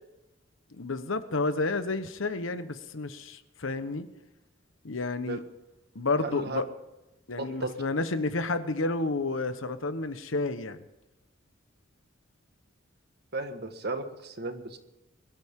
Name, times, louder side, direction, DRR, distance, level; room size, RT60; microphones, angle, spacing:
voice 1, 0.7-4.1 4.8-5.4 5.9-6.6 7.3-10.8, left 3 dB, 80° left, 11 dB, 1.1 m, -30 dB
voice 2, 6.2-6.6 7.4-7.7 13.3-14.8, right 3 dB, 55° right, 7 dB, 1.5 m, -35 dB
22.5 x 12.5 x 3.7 m, 0.95 s
head